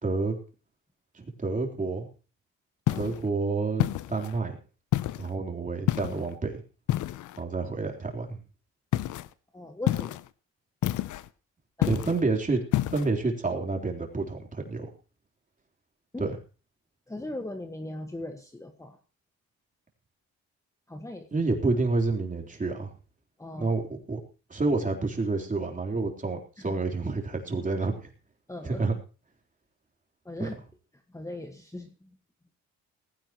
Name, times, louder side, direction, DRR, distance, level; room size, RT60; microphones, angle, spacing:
voice 1, 0.0-0.4 1.2-2.1 3.0-4.6 5.2-6.5 7.4-8.4 11.8-12.6 12.9-14.9 16.2-16.3 21.3-22.9 23.6-24.2 24.5-27.9 28.6-28.9 30.4-30.5, right 3 dB, 25° right, 2 dB, 3.8 m, -29 dB
sound 1, 2.9-3.2 3.8-4.4 4.9-5.3 5.9-6.3 6.9-7.4 8.9-9.3 9.9-10.3 10.8-11.3 11.8-12.2 12.7-13.1, left 14 dB, 80° left, 0.7 m, -28 dB
voice 2, 9.5-10.2 11.8-12.0 16.1-16.3 17.1-19.0 20.9-21.3 23.4-23.8 26.6-26.8 28.5-28.8 30.2-30.5 31.1-32.1, left 1 dB, 10° left, 5 dB, 1.6 m, -39 dB
18.0 x 16.0 x 3.1 m, 0.35 s
cardioid pair, 90°, 30 cm